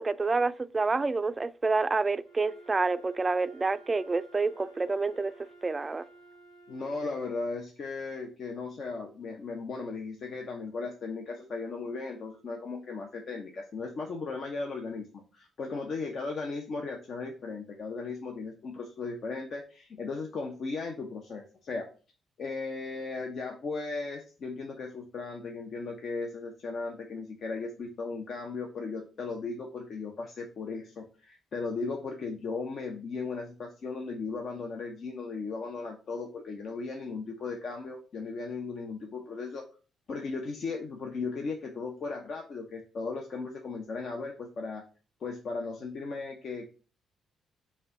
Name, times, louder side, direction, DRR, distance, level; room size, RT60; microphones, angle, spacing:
voice 1, 0.0-5.3 5.6-6.0, right 3 dB, 30° right, 0.3 m, -28 dB
Wind instrument woodwind instrument, 2.2-7.4, right 3 dB, 80° left, 0.9 m, -54 dB
voice 2, 6.7-21.9 22.4-39.6 40.1-44.8 45.2-46.7, left 4 dB, 60° left, 0.6 m, -36 dB
5.4 x 2.2 x 3.6 m
supercardioid pair, 60°, 0 cm